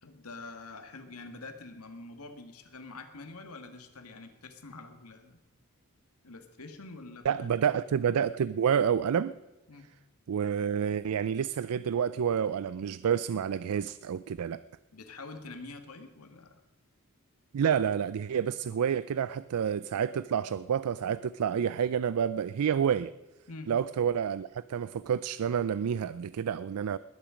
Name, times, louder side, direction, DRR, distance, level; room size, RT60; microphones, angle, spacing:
voice 1, 0.0-5.4 6.2-7.5 9.7-9.9 14.9-16.6 23.5-23.7, left 3 dB, 80° left, 6 dB, 1.9 m, -46 dB
voice 2, 7.3-9.4 10.3-14.6 17.5-23.1 23.7-27.0, right 8 dB, 80° right, 16 dB, 0.4 m, -29 dB
20.5 x 10.0 x 5.1 m, 1.2 s
head